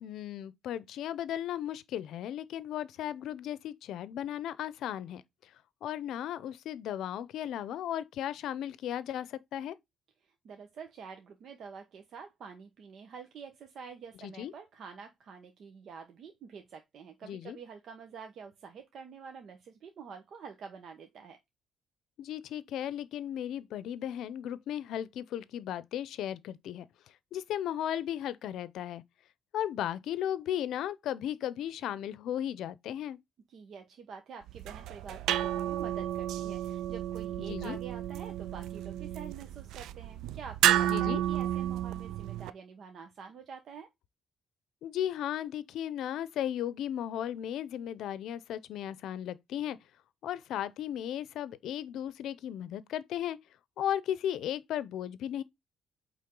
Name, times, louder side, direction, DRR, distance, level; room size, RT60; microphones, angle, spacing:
voice 1, 0.0-5.5 5.8-9.8 14.2-14.5 17.2-17.6 22.2-26.8 27.3-29.0 29.5-33.2 37.4-37.8 40.8-41.2 44.8-49.8 50.2-53.4 53.8-55.4, left 11 dB, 80° left, 0.6 m, -35 dB
voice 2, 10.4-21.4 33.5-43.9, right 6 dB, 65° right, 1.0 m, -47 dB
sound 1, 34.5-42.5, right 12 dB, 85° right, 0.3 m, -32 dB
8.5 x 3.6 x 3.8 m
cardioid pair, 90°, 0 cm